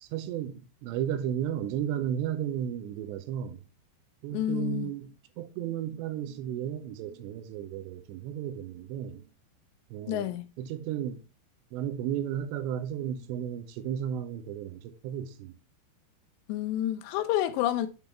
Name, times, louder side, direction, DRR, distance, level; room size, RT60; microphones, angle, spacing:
voice 1, 0.0-3.6 4.2-5.1 5.4-9.2 9.9-10.3 10.6-11.2 11.7-15.5, right 10 dB, 80° right, 2.7 m, -34 dB
voice 2, 4.3-4.9 10.1-10.5 16.5-17.9, left 12 dB, 85° left, 2.5 m, -29 dB
7.9 x 3.6 x 4.2 m
omnidirectional pair, 5.5 m